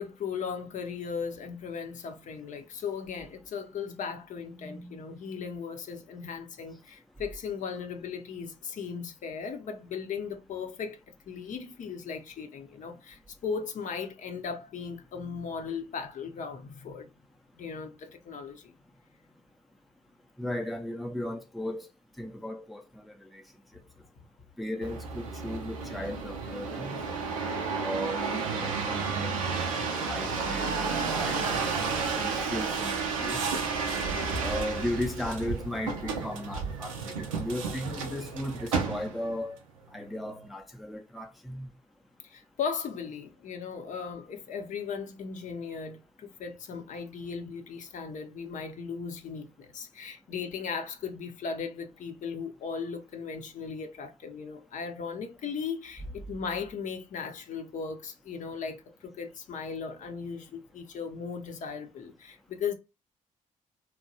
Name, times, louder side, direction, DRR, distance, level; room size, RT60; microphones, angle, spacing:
voice 1, 0.0-17.1 17.6-18.7 34.0-34.5 42.2-62.7, left 6 dB, 50° left, 0.6 m, -37 dB
voice 2, 4.5-5.0 20.4-21.9 22.2-23.4 24.6-27.0 27.8-29.4 30.1-33.4 34.4-39.6 39.9-41.7, left 1 dB, ahead, 0.5 m, -36 dB
sound 1, 24.8-39.4 39.9-40.5, right 5 dB, 85° right, 0.5 m, -32 dB
3.0 x 2.1 x 2.6 m
figure-of-eight pair, 45°, 17 cm